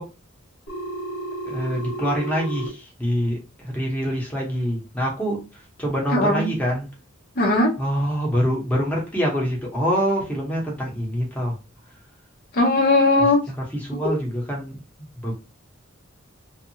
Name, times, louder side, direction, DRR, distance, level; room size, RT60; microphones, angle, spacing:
Telephone, 0.7-2.7, right 2 dB, 70° left, 1.3 m, -32 dB
voice 1, 1.4-6.9 7.8-11.6 13.2-15.3, equal, 5° left, -2 dB, 0.9 m, -25 dB
voice 2, 6.1-6.5 7.4-7.7 12.5-13.4, left 2 dB, 45° left, 0 dB, 0.7 m, -18 dB
2.7 x 2.3 x 2.7 m, 0.29 s
head